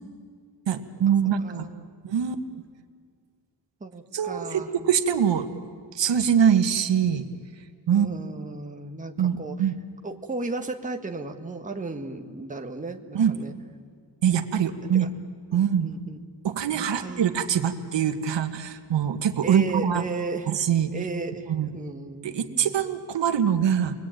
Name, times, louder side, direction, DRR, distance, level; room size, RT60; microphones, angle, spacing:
voice 1, 0.7-1.7 2.0-2.4 4.1-5.5 5.9-7.2 7.9-8.1 9.2-9.7 13.1-13.3 14.2-15.1 15.5-15.9 16.4-20.0 20.5-20.9 21.5-21.7 22.2-23.9, right 8 dB, 75° right, 7 dB, 1.7 m, -23 dB
voice 2, 1.4-1.9 3.8-4.7 7.9-9.7 10.0-13.5 14.9-15.1 15.5-16.2 16.7-17.3 19.4-20.5 20.9-22.7, right 3 dB, 15° right, 4 dB, 1.7 m, -35 dB
30.0 x 21.5 x 9.1 m, 2.1 s
wide cardioid pair, 120°, 43 cm